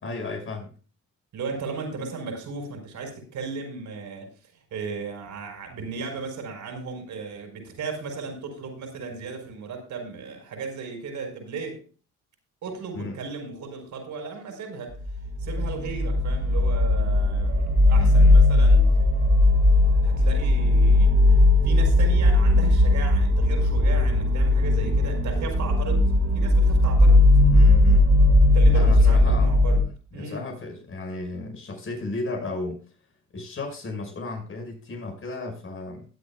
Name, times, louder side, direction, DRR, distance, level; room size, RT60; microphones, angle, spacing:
voice 1, 0.0-0.7 12.9-13.2 17.9-18.4 27.5-28.1 28.7-29.5 30.1-32.8 33.3-36.1, left 3 dB, 45° left, 2 dB, 5.6 m, -34 dB
voice 2, 1.3-4.3 4.7-11.8 12.6-15.0 15.4-18.9 20.0-27.2 28.4-29.8 30.1-30.5, right 4 dB, 70° right, 4 dB, 4.9 m, -36 dB
sound 1, 15.0-29.8, left 2 dB, 50° right, 3.8 m, -18 dB
21.0 x 8.0 x 2.3 m, 0.38 s
cardioid pair, 90°, 30 cm